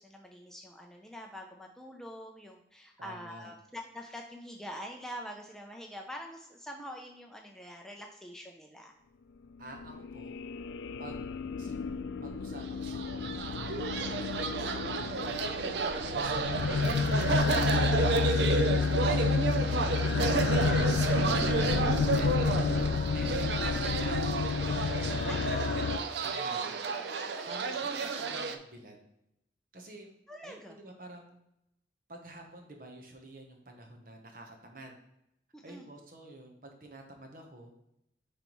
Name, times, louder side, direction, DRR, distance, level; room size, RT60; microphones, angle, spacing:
voice 1, 0.0-8.9 15.0-15.3 23.6-23.9 25.3-25.8 27.4-28.4 30.3-30.8 35.5-35.9, equal, 5° left, 1 dB, 0.5 m, -45 dB
voice 2, 3.0-3.5 9.6-10.3 11.0-11.2 11.6-11.8 12.2-14.7 15.4-16.7 17.2-20.0 20.5-21.2 21.5-22.3 23.1-24.5 24.9-25.6 26.2-26.8 27.5-27.7 28.1-29.0 29.7-30.1 30.4-31.4 32.1-35.0 35.6-37.7, right 1 dB, 50° right, 3 dB, 1.0 m, -49 dB
sound 1, 9.8-26.0, left 5 dB, 80° left, 0.3 m, -30 dB
sound 2, 12.7-28.6, right 4 dB, 75° right, 0.5 m, -31 dB
9.2 x 3.4 x 3.0 m, 0.82 s
head